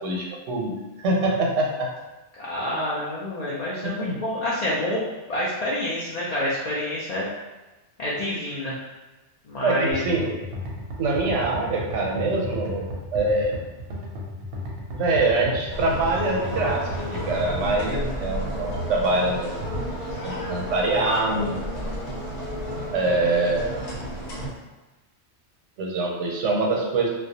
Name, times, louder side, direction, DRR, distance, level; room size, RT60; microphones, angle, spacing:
voice 1, 0.0-1.9 3.8-4.2 9.6-10.3 11.0-13.5 14.9-19.5 20.2-21.6 22.9-23.7 25.8-27.1, right 2 dB, 90° right, -1 dB, 0.9 m, -24 dB
voice 2, 2.3-5.0 5.3-7.3 8.0-8.8 9.4-10.1, left 1 dB, 65° left, -7 dB, 0.4 m, -28 dB
sound 1, 9.9-17.9, equal, 65° right, 0.7 m, -34 dB
sound 2, 15.7-24.5, equal, 85° left, 1.1 m, -32 dB
2.3 x 2.1 x 2.7 m, 1.1 s
omnidirectional pair, 1.2 m